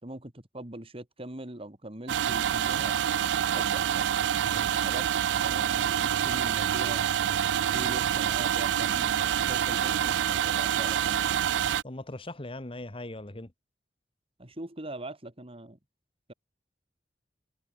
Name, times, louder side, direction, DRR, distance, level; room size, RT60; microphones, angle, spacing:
voice 1, 0.0-2.9 3.5-4.0 4.8-7.1 7.7-11.4 14.4-15.8, right 1 dB, 35° right, 2.6 m, -42 dB
sound 1, 2.1-11.8, right 9 dB, 90° right, 0.3 m, -27 dB
voice 2, 4.5-4.9 11.8-13.5, left 1 dB, 30° left, 1.5 m, -40 dB
head